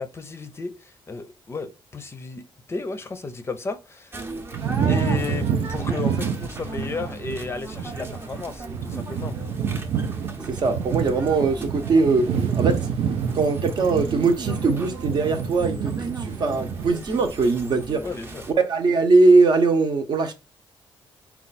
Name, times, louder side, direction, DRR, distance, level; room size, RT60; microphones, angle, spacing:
voice 1, 0.0-4.2 4.9-9.3 18.0-18.4, left 4 dB, 25° left, 0.5 m, -33 dB
sound 1, 4.1-18.5, right 3 dB, 25° right, 0.7 m, -37 dB
sound 2, 4.5-16.9, right 7 dB, 75° right, 0.5 m, -28 dB
voice 2, 10.5-12.3 12.6-12.8 13.3-18.0 18.7-20.3, right 3 dB, 50° right, 0.8 m, -20 dB
4.3 x 2.3 x 4.0 m
cardioid pair, 140°, 9 cm